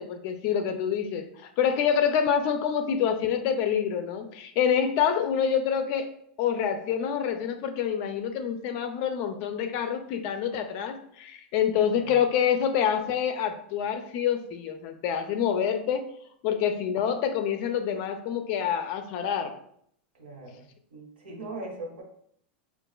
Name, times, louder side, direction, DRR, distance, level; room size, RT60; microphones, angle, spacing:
voice 1, 0.0-6.1 6.4-16.1 16.4-19.5, left 8 dB, 35° left, 7 dB, 0.4 m, -27 dB
voice 2, 20.1-20.6 20.9-22.0, right 2 dB, 90° right, 1 dB, 1.4 m, -40 dB
6.3 x 2.4 x 2.2 m, 0.68 s
supercardioid pair, 180°, 6 cm